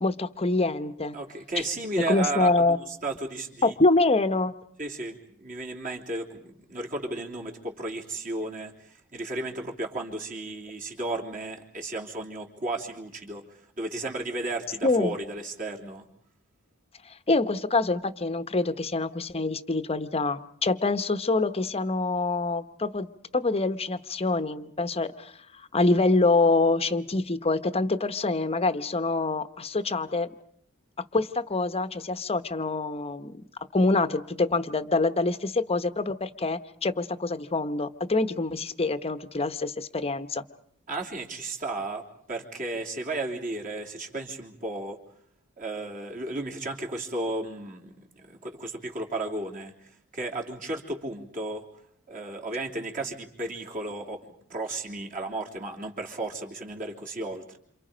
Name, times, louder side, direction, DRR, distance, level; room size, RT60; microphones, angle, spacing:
voice 1, 0.0-1.2 1.6-1.7 2.0-2.8 3.6-4.5 14.8-15.1 17.3-25.3 25.7-30.3 31.0-33.4 33.7-40.4, left 3 dB, 30° left, 11 dB, 1.0 m, -25 dB
voice 2, 1.1-3.7 4.8-16.1 40.9-42.0 42.3-45.0 45.6-51.6 52.1-57.6, right 2 dB, 40° right, 1 dB, 3.4 m, -34 dB
28.5 x 28.0 x 5.2 m, 0.64 s
head